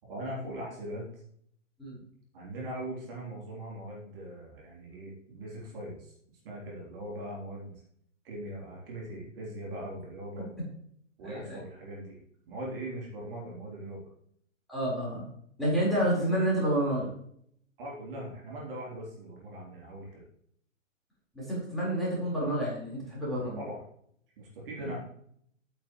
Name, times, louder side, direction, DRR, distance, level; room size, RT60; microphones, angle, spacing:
voice 1, 0.0-1.2 2.3-6.1 6.4-7.8 8.2-10.6 11.2-12.2 12.5-14.1 17.8-20.2 23.6-23.8 24.4-25.0, right 1 dB, 45° right, -3 dB, 3.7 m, -40 dB
voice 2, 11.2-11.6 14.7-15.2 15.6-17.1 21.3-23.6, right 1 dB, ahead, -7 dB, 4.5 m, -29 dB
11.0 x 9.2 x 3.2 m, 0.67 s
figure-of-eight pair, 120°, 39 cm